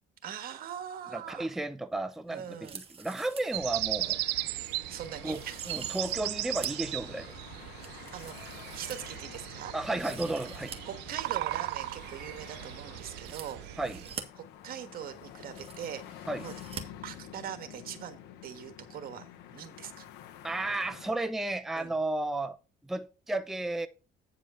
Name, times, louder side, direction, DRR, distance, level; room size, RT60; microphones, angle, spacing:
voice 1, 0.2-1.5 2.3-2.8 4.9-5.6 7.9-9.7 10.8-13.6 14.6-16.5 17.0-20.1 21.7-21.9, right 9 dB, 60° right, 1.5 m, -42 dB
voice 2, 1.1-4.2 5.2-5.4 5.7-7.3 9.7-10.7 13.8-14.0 16.3-16.5 20.4-22.6 22.8-23.9, right 2 dB, ahead, 0.5 m, -33 dB
sound 1, 2.5-3.6 4.0-4.1 4.6-4.8 5.2-6.9 7.3-9.4 9.8-10.8 11.1-11.2 13.1-14.2 15.0-15.1 15.3-16.0 16.4-16.8 17.1-17.2, right 6 dB, 35° right, 1.6 m, -45 dB
sound 2, 3.5-14.2, right 17 dB, 85° right, 0.5 m, -37 dB
sound 3, 4.0-21.1, left 10 dB, 85° left, 1.0 m, -49 dB
9.0 x 4.9 x 5.5 m
cardioid pair, 110°, 17 cm